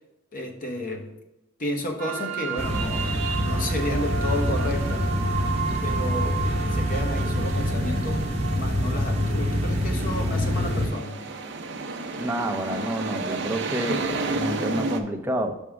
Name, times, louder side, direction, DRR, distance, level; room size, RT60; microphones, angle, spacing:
voice 1, 0.3-1.1 1.6-5.1 5.8-6.5 6.7-8.3 8.5-11.2, left 1 dB, 40° left, 3 dB, 0.9 m, -32 dB
sound 1, 2.0-15.0, right 4 dB, 60° right, 0.6 m, -32 dB
sound 2, 2.6-10.9, equal, 30° right, 1.0 m, -26 dB
voice 2, 12.2-15.5, right 1 dB, 10° right, 3 dB, 0.5 m, -29 dB
5.9 x 3.6 x 5.9 m, 0.97 s
head